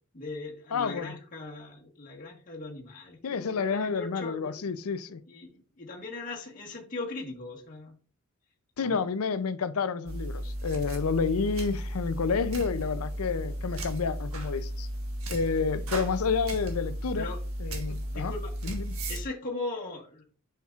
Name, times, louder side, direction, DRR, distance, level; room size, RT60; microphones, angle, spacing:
voice 1, 0.1-4.5 5.3-5.5 5.8-7.9 8.8-9.1 17.2-17.4 18.1-18.5 19.1-20.2, left 3 dB, 40° left, 1.5 m, -39 dB
voice 2, 0.7-1.2 3.2-5.2 8.8-14.9 15.3-17.3 17.6-18.3 18.6-19.0, left 5 dB, 75° left, 0.5 m, -29 dB
sound 1, 10.1-19.2, equal, 70° right, 1.4 m, -34 dB
7.1 x 5.8 x 2.4 m
head